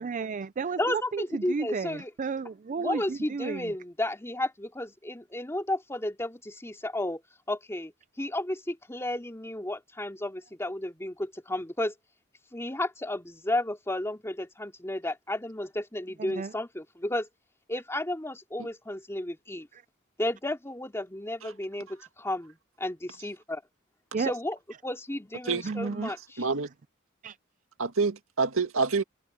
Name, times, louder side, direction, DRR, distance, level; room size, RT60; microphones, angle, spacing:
voice 1, 0.0-3.7 16.2-16.5 24.1-24.3 25.6-26.1 27.2-27.4, right 5 dB, 40° right, 0.4 m, -33 dB
voice 2, 0.8-2.1 2.8-7.2 7.5-7.9 8.2-11.9 12.5-17.3 17.7-19.7 20.2-23.6 24.2-24.6 24.8-26.5, left 1 dB, 15° left, 2.7 m, -33 dB
voice 3, 26.0-26.7 27.8-29.0, right 4 dB, 85° right, 2.0 m, -27 dB
head